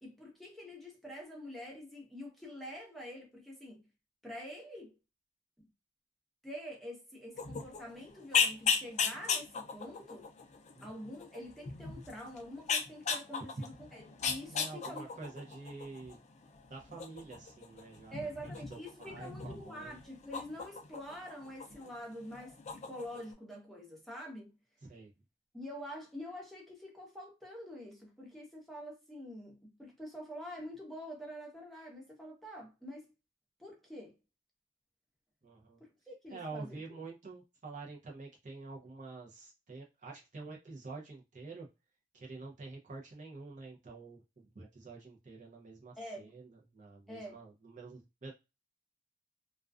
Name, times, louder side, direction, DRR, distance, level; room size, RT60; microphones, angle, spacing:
voice 1, 0.0-3.8 4.2-4.9 6.4-10.3 10.8-15.0 18.1-24.5 25.5-33.1 33.6-34.1 35.8-36.8 46.0-46.4 47.1-47.4, equal, ahead, 0.9 m, -46 dB
sound 1, 7.4-21.9 22.2-23.3, left 6 dB, 40° left, 0.4 m, -37 dB
voice 2, 14.5-16.2 16.7-18.1 18.4-20.0 24.8-25.1 35.4-35.8 36.3-41.7 42.1-46.5 46.7-48.3, right 3 dB, 40° right, 0.6 m, -48 dB
2.3 x 2.2 x 2.3 m
head